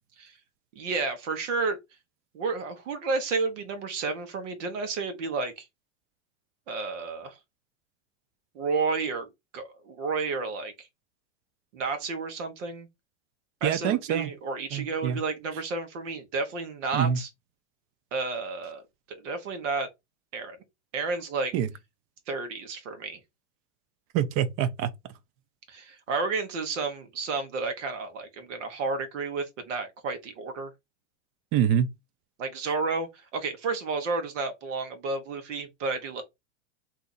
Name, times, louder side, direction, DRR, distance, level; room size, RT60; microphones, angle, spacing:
voice 1, 0.7-1.8 2.3-5.7 6.7-7.4 8.5-10.9 11.7-12.9 13.6-17.3 18.1-18.8 19.1-19.9 20.3-20.6 20.9-21.5 22.3-23.2 25.7-30.7 32.4-36.2, right 4 dB, 75° right, 1.1 m, -31 dB
voice 2, 13.6-14.3 14.7-15.2 16.9-17.2 21.5-21.7 24.1-24.9 31.5-31.9, right 9 dB, 40° right, 0.5 m, -25 dB
2.7 x 2.4 x 3.9 m
supercardioid pair, 120°, 37 cm